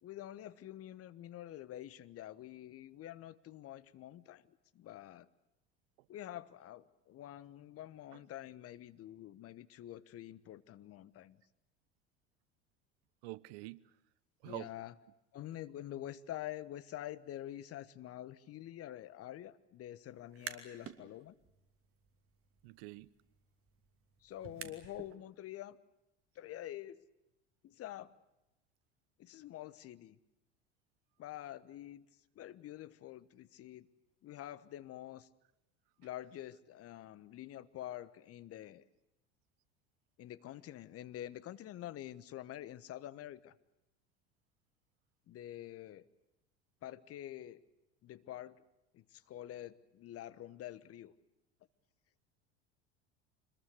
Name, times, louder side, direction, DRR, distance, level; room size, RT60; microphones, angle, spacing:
voice 1, 0.0-5.3 6.1-11.4 14.4-14.9 15.3-21.3 24.2-25.8 26.3-27.0 27.6-28.1 29.2-30.2 31.2-32.1 32.3-33.9 34.2-35.3 36.0-38.9 40.2-43.6 45.3-46.1 46.8-47.6 48.0-48.6 48.9-51.1, left 13 dB, 40° left, 1.2 m, -47 dB
voice 2, 13.2-13.9 14.4-14.7 22.6-23.1, right 20 dB, 60° right, 0.9 m, -46 dB
sound 1, 20.2-21.0 21.4-25.2, right 8 dB, 40° right, 2.9 m, -51 dB
25.5 x 21.0 x 8.1 m
hypercardioid pair, 75°, 35 cm